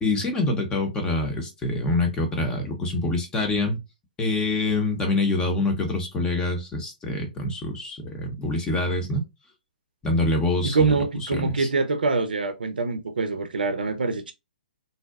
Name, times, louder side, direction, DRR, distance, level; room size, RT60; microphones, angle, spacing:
voice 1, 0.0-3.8 4.2-9.2 10.0-10.9 11.2-11.7, left 2 dB, 15° left, 0.6 m, -25 dB
voice 2, 10.7-14.3, right 4 dB, 80° right, 0.5 m, -24 dB
2.6 x 2.0 x 2.3 m
hypercardioid pair, 130°, 5 cm